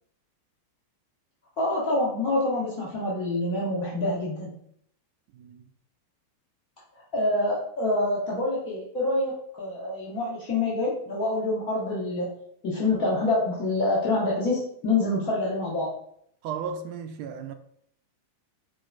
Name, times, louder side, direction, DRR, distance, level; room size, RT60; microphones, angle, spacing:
voice 1, 1.6-4.5 7.1-12.3 12.6-15.9, left 2 dB, 35° left, 1.0 m, -26 dB
voice 2, 5.3-5.6 16.4-17.5, right 6 dB, 45° right, 0.3 m, -35 dB
5.2 x 2.4 x 2.2 m
figure-of-eight pair, 90°, 0 cm